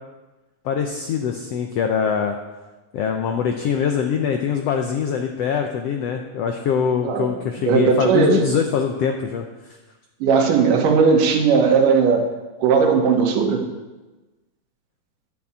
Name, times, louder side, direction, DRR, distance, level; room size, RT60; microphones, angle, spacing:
voice 1, 0.6-2.4 2.9-9.4, left 7 dB, 90° left, 4 dB, 1.4 m, -23 dB
voice 2, 7.0-8.5 10.2-12.3 12.6-13.7, right 5 dB, 80° right, 3 dB, 2.8 m, -17 dB
10.5 x 6.1 x 8.3 m, 1.2 s
omnidirectional pair, 3.8 m